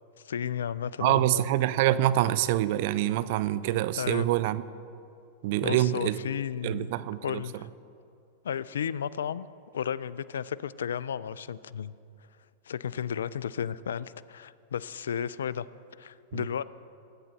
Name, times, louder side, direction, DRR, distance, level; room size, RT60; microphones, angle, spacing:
voice 1, 0.2-1.5 4.0-4.3 5.6-6.9 7.2-7.7 8.4-9.5 9.7-11.9 12.7-15.7 16.0-16.6, left 8 dB, 80° left, 18 dB, 0.3 m, -33 dB
voice 2, 1.0-4.6 5.4-6.2 6.6-7.4 16.3-16.4, right 14 dB, 60° right, 17 dB, 0.5 m, -26 dB
19.5 x 8.8 x 4.1 m, 2.5 s
hypercardioid pair, 105°, 0 cm